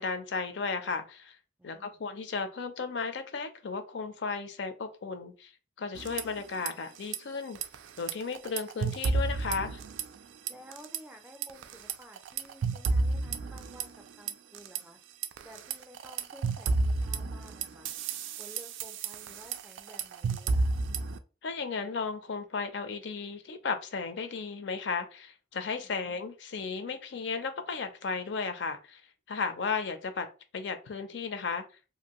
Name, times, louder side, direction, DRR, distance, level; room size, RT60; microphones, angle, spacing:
voice 1, 0.0-1.4 1.6-5.5 5.8-7.6 8.0-9.8 21.4-29.0 29.3-30.3 30.5-31.6, left 5 dB, 70° left, 0.4 m, -34 dB
voice 2, 1.6-2.0 10.5-15.0 15.4-17.9 18.4-20.8 25.8-26.2, equal, 10° right, 0.4 m, -53 dB
sound 1, 5.9-6.7 7.0-7.2 7.5-10.2 10.5-11.0 11.4-14.8 15.2-21.2, right 3 dB, 80° right, 0.3 m, -31 dB
2.6 x 2.5 x 2.9 m
head